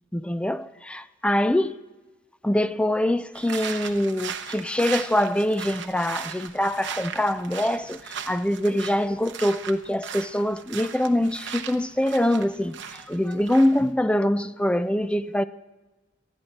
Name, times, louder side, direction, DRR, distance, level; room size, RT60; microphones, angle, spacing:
voice 1, 0.1-1.8 2.4-15.4, left 1 dB, 5° left, 0.4 m, -24 dB
sound 1, 3.3-13.9, right 7 dB, 65° right, 0.9 m, -38 dB
19.5 x 13.0 x 4.2 m
head